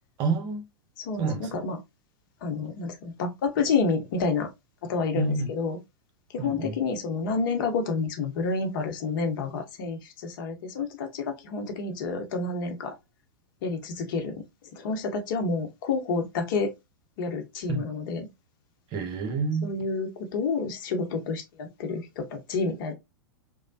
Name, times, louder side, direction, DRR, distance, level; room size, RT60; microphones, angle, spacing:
voice 1, 0.2-0.6 1.2-1.5 5.1-5.5 6.4-6.8 17.7-17.8 18.9-19.7, right 4 dB, 40° right, 0.7 m, -28 dB
voice 2, 1.0-1.8 2.4-4.5 4.8-5.8 6.3-12.9 13.6-14.4 14.7-16.7 17.2-18.3 19.6-22.9, left 4 dB, 60° left, 0.8 m, -29 dB
3.1 x 2.0 x 2.6 m
hypercardioid pair, 100°, 12 cm